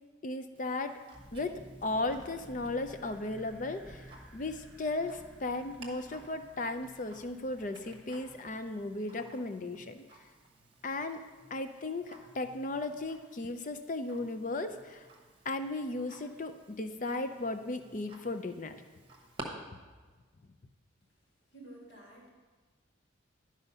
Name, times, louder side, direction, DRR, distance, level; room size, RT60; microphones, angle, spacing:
voice 1, 0.2-0.9 1.3-1.5 1.8-4.0 4.3-10.0 10.8-11.2 11.5-15.1 15.5-18.8, left 2 dB, 40° left, 9 dB, 0.5 m, -36 dB
Tick-tock, 0.5-19.4, right 2 dB, 25° right, 1.1 m, -55 dB
sound 1, 1.1-9.2, equal, ahead, 1.0 m, -54 dB
voice 2, 21.5-22.3, right 1 dB, 60° left, -3 dB, 2.5 m, -51 dB
11.5 x 4.9 x 5.5 m, 1.3 s
head